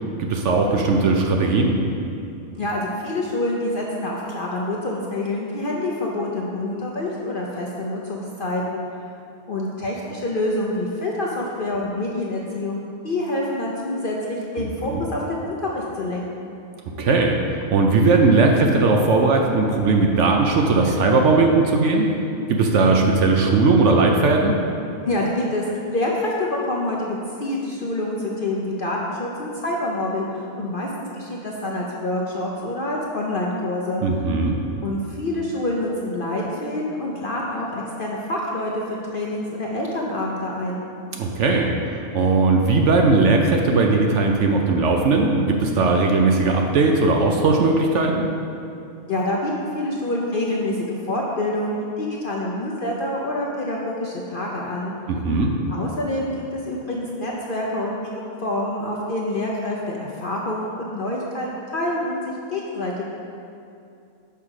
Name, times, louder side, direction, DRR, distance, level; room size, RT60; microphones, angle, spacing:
voice 1, 0.2-1.8 14.6-15.0 17.0-17.4 17.7-22.1 22.5-24.5 34.0-34.6 41.1-41.7 42.1-48.3 55.1-55.5, right 3 dB, 65° right, 2 dB, 0.8 m, -18 dB
voice 2, 2.6-8.8 9.5-16.5 25.0-25.6 25.9-34.0 34.8-40.8 49.1-54.9 55.7-63.1, left 1 dB, 50° left, -3 dB, 0.6 m, -27 dB
5.7 x 4.9 x 6.3 m, 2.6 s
omnidirectional pair, 1.5 m